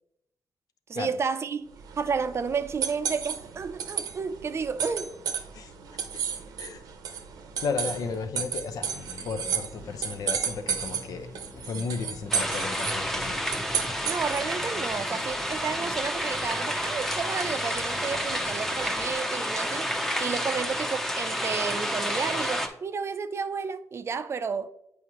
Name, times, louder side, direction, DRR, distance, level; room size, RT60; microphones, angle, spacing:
voice 1, 0.9-1.7 2.0-5.1 14.1-19.9 20.2-24.7, right 5 dB, 45° right, 0.5 m, -31 dB
sound 1, 1.7-14.6, right 7 dB, 80° right, 0.7 m, -33 dB
voice 2, 7.6-8.9 9.2-11.3 11.6-13.4, left 5 dB, 70° left, 0.7 m, -34 dB
sound 2, 7.8-19.1, left 3 dB, 35° left, 0.8 m, -46 dB
sound 3, 12.3-22.7, equal, 5° left, 0.8 m, -30 dB
8.3 x 4.8 x 3.0 m
cardioid pair, 85°, 6 cm